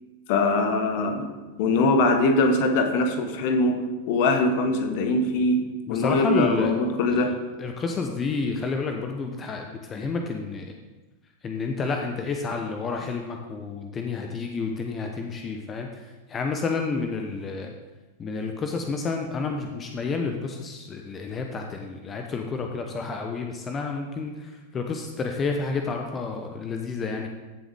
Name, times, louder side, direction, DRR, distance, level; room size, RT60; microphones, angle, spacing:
voice 1, 0.3-1.3 1.6-7.4, left 2 dB, 50° left, 6 dB, 1.3 m, -22 dB
voice 2, 5.9-6.7 7.1-7.2 7.6-10.7 11.4-17.7 18.2-27.3, left 4 dB, 25° left, 3 dB, 1.0 m, -30 dB
15.0 x 7.3 x 3.7 m, 1.2 s
figure-of-eight pair, 90°, 0 cm